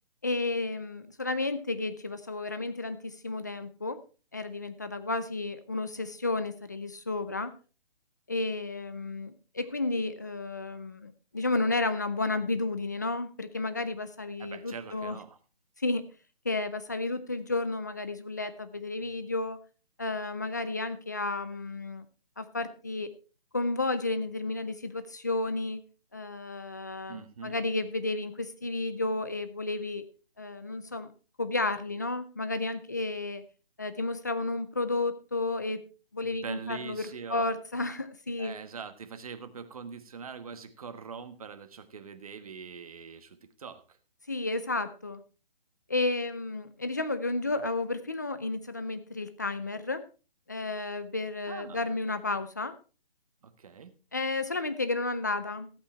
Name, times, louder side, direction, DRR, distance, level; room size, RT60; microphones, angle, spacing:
voice 1, 0.2-4.0 4.3-7.5 8.3-15.2 15.8-16.1 16.4-19.6 20.0-22.1 22.4-23.1 23.5-25.8 26.1-30.1 30.4-31.1 31.4-33.4 33.8-35.8 36.1-38.6 44.3-45.2 45.9-50.0 50.5-52.7 54.1-55.7, left 2 dB, 20° left, 12 dB, 0.5 m, -32 dB
voice 2, 14.4-15.4 27.1-27.6 36.2-37.5 38.4-43.8 51.5-51.8 53.4-53.9, right 6 dB, 40° right, 9 dB, 1.4 m, -43 dB
15.0 x 8.4 x 4.3 m, 0.35 s
hypercardioid pair, 170°, 29 cm